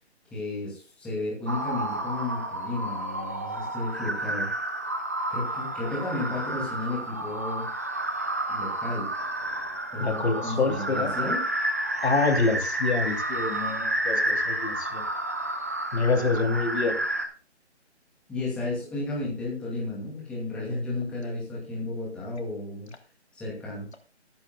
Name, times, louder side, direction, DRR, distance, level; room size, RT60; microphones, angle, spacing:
voice 1, 0.3-4.5 5.3-7.7 8.5-9.1 9.9-11.4 18.3-22.9 23.3-23.9, left 2 dB, 5° left, -5 dB, 2.4 m, -33 dB
sound 1, 1.5-17.2, right 1 dB, 15° right, 0.7 m, -30 dB
voice 2, 10.0-11.1 12.0-15.0 15.9-17.0, left 3 dB, 65° left, 5 dB, 2.9 m, -26 dB
19.5 x 10.5 x 2.3 m, 0.37 s
hypercardioid pair, 165°, 35 cm